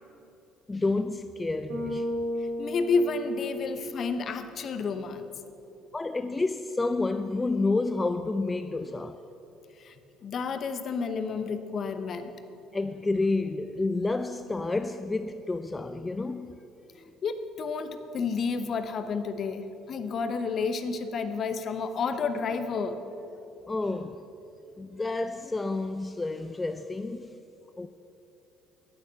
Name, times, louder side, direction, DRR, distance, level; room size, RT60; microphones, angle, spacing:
voice 1, 0.7-2.1 5.9-9.2 12.7-16.5 23.7-24.2 24.8-27.3 27.8-27.9, left 3 dB, 20° left, 0.4 m, -29 dB
Bass guitar, 1.7-4.0, left 1 dB, 55° right, 2.6 m, -34 dB
voice 2, 2.6-5.3 9.8-9.9 10.2-12.3 17.2-23.0, left 4 dB, 45° left, 0.9 m, -30 dB
10.5 x 9.5 x 6.8 m
figure-of-eight pair, 55°, 0 cm